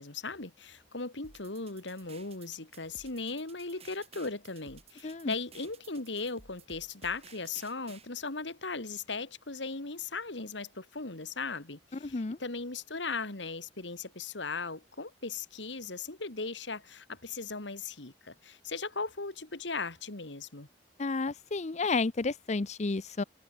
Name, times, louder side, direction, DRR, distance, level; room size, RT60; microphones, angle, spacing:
voice 1, 0.0-20.7, left 4 dB, 80° left, 2.6 m, -38 dB
sound 1, 1.2-8.1, right 5 dB, 35° right, 2.8 m, -55 dB
voice 2, 5.0-5.3 12.1-12.4 21.0-23.2, left 3 dB, 40° left, 0.6 m, -31 dB
head